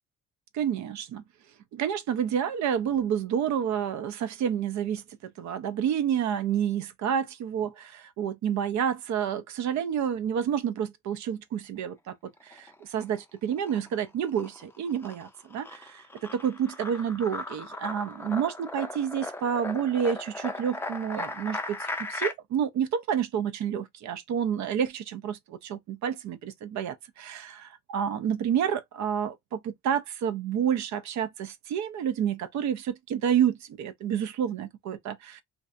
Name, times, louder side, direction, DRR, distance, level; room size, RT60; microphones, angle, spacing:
voice 1, 0.5-1.2 1.7-35.4, right 8 dB, 70° right, 0.5 m, -29 dB
sound 1, 12.4-13.2 13.5-22.3, left 2 dB, 10° left, 0.4 m, -37 dB
2.6 x 2.2 x 2.4 m
cardioid pair, 90°, 30 cm